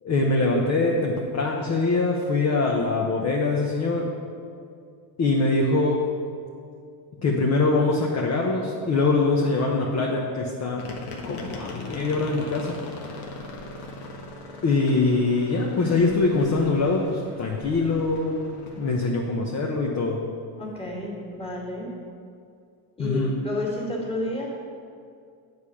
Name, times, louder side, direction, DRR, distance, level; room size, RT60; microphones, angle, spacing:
voice 1, 0.0-4.1 5.2-6.0 7.2-10.8 11.3-12.8 14.6-20.2 23.0-23.3, left 3 dB, 30° left, -1 dB, 0.9 m, -23 dB
sound 1, 10.8-19.1, left 3 dB, 75° left, 1.4 m, -40 dB
voice 2, 20.6-21.9 23.0-24.5, left 2 dB, 10° left, -3 dB, 2.1 m, -31 dB
8.2 x 5.0 x 7.0 m, 2.3 s
cardioid pair, 125°, 47 cm